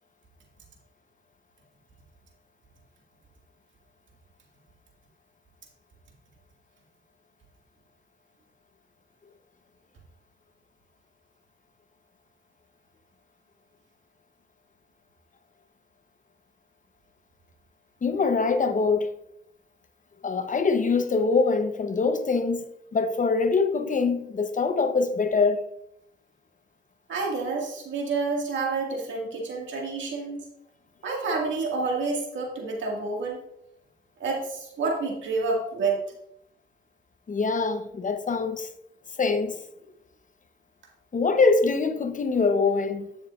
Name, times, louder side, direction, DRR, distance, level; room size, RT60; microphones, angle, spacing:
voice 1, 18.0-19.1 20.2-22.6 22.9-25.6 37.3-38.7 39.2-39.6 41.1-43.1, left 4 dB, 45° left, 0.9 m, -24 dB
voice 2, 27.1-30.4 31.0-33.4 34.2-36.0, right 3 dB, 85° right, 2.0 m, -28 dB
9.4 x 7.3 x 2.5 m
cardioid pair, 70°, 19 cm